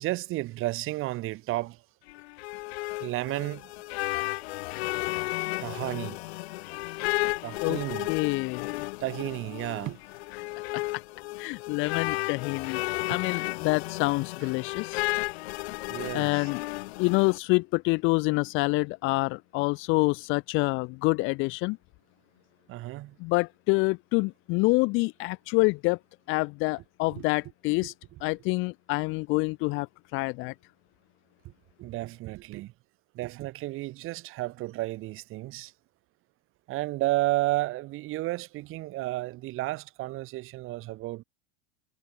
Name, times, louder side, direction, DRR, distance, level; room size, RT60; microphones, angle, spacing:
voice 1, 0.0-1.8 3.0-3.7 5.6-6.2 7.4-8.1 9.0-10.0 13.1-13.2 15.9-16.5 22.7-23.2 27.1-27.2 31.5-31.6 31.8-32.7 33.1-35.7 36.7-41.2, right 18 dB, 40° right, 1.8 m, -32 dB
sound 1, 2.1-17.4, left 21 dB, 65° left, 1.4 m, -33 dB
voice 2, 8.1-8.8 10.7-11.0 11.4-15.0 16.1-16.7 17.0-21.8 23.2-26.0 26.3-27.9 28.2-30.5, left 26 dB, 40° left, 0.5 m, -27 dB
supercardioid pair, 135°, 33 cm